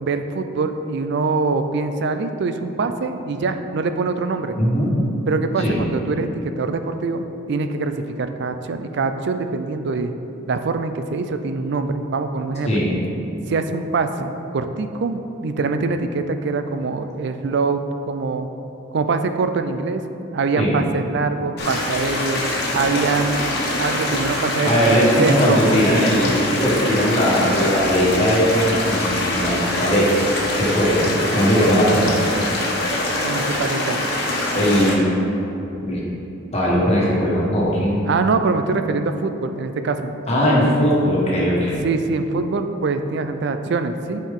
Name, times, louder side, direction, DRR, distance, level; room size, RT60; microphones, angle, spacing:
voice 1, 0.0-4.6 5.3-10.1 10.5-12.7 13.5-18.5 18.9-20.0 20.3-22.4 22.7-23.4 23.8-25.6 33.2-34.0 38.1-40.1 41.8-44.2, right 4 dB, 60° right, 8 dB, 0.4 m, -24 dB
voice 2, 4.6-5.0 5.6-5.8 12.7-13.0 20.6-20.8 24.6-30.1 30.6-32.1 34.5-35.3 35.8-36.0 36.5-38.0 40.3-41.8, equal, 35° left, -6 dB, 1.6 m, -19 dB
sound 1, 21.6-34.9, left 1 dB, 55° left, 1.2 m, -24 dB
9.0 x 4.5 x 3.7 m, 3.0 s
head